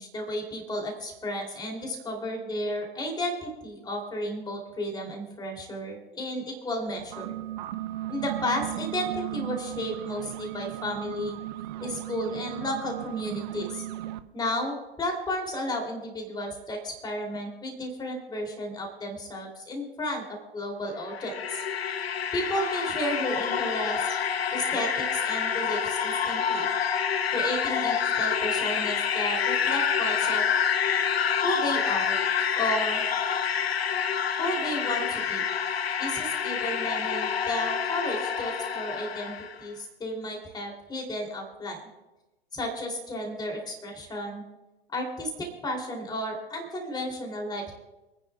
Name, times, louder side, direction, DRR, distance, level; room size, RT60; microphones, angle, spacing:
voice 1, 0.0-7.3 8.1-11.4 11.8-13.8 14.3-21.6 22.3-24.0 24.5-26.7 27.3-30.4 31.4-32.2 32.5-33.0 34.4-35.4 36.0-39.3 39.6-41.8 42.5-44.4 44.9-47.7, left 1 dB, 10° left, 1 dB, 3.0 m, -33 dB
sound 1, 7.0-14.2, right 14 dB, 45° right, 0.7 m, -36 dB
sound 2, 20.9-39.6, left 7 dB, 70° left, 0.9 m, -27 dB
28.5 x 9.8 x 2.3 m, 1.0 s
figure-of-eight pair, 100°, 32 cm